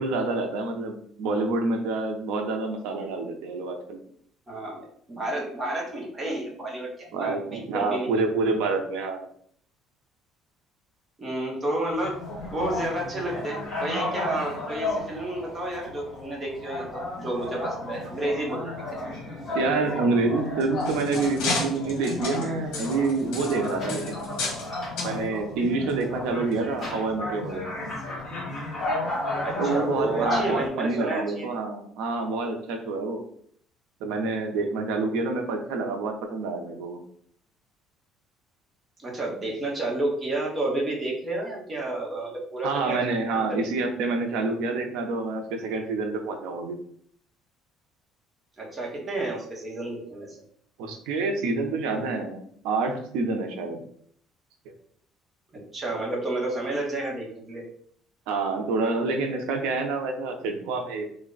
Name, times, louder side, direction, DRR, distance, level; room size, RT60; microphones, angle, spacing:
voice 1, 0.0-4.0 7.1-9.3 19.5-24.2 25.0-27.7 29.6-33.2 34.0-37.0 42.6-46.8 50.8-53.8 58.3-61.0, right 3 dB, 90° right, 4 dB, 0.7 m, -27 dB
voice 2, 4.5-8.1 11.2-12.2 12.5-18.8 29.4-31.5 39.0-43.0 43.3-43.7 48.6-50.4 55.5-57.6, right 2 dB, 15° right, -3 dB, 0.9 m, -30 dB
sound 1, 11.9-30.7, left 2 dB, 25° left, 1.3 m, -33 dB
sound 2, 20.4-24.7 25.0-25.1 25.9-26.0 26.5-26.6, left 3 dB, 70° left, 1.0 m, -32 dB
3.3 x 2.2 x 3.8 m, 0.62 s
cardioid pair, 175°, 0 cm